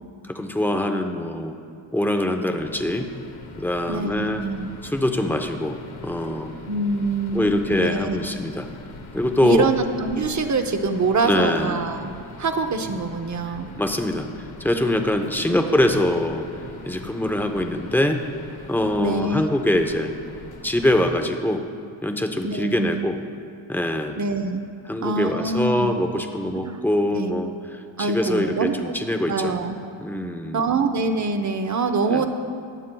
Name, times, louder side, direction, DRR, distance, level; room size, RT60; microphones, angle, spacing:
voice 1, 0.2-1.6 1.9-3.1 3.6-4.4 4.8-5.8 6.0-6.5 7.3-8.7 9.1-9.7 11.2-11.8 13.5-14.3 14.6-16.4 16.9-18.2 18.7-20.1 20.6-21.6 22.0-23.2 23.7-24.2 24.9-29.5 30.0-30.6 32.1-32.2, left 1 dB, 5° left, 5 dB, 0.6 m, -23 dB
sound 1, 2.6-21.2, left 4 dB, 70° left, 1.0 m, -42 dB
voice 2, 3.9-4.7 6.7-8.4 9.4-12.1 12.4-13.7 15.5-15.6 19.0-19.5 22.4-23.1 24.2-24.6 25.0-25.9 26.6-26.8 27.1-27.4 28.0-28.9 29.3-29.8 30.5-32.3, right 3 dB, 35° right, 7 dB, 0.7 m, -25 dB
22.0 x 7.4 x 2.3 m, 2.4 s
cardioid pair, 90°, 49 cm